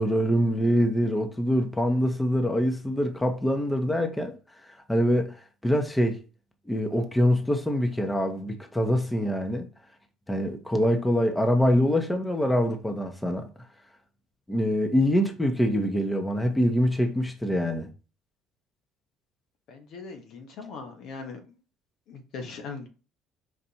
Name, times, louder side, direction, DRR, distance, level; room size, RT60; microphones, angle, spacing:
voice 1, 0.0-4.3 4.9-5.4 5.6-6.2 6.7-9.7 10.3-13.5 14.5-17.9, equal, 10° left, 0.9 m, -24 dB
voice 2, 19.7-21.6 22.1-22.9, left 4 dB, 65° left, 1.1 m, -40 dB
4.4 x 2.5 x 4.3 m
hypercardioid pair, 60°, 0 cm